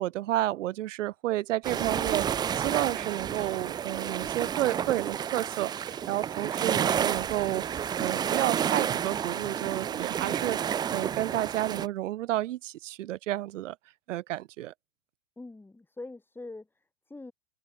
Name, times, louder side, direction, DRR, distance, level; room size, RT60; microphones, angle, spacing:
voice 1, 0.0-10.6 10.9-13.8 14.1-14.7, right 15 dB, 85° right, 0.9 m, -31 dB
sound 1, 1.6-11.9, right 8 dB, 10° right, 0.5 m, -30 dB
voice 2, 15.4-17.3, left 2 dB, 5° left, 4.3 m, -44 dB
open air
supercardioid pair, 145°, 37 cm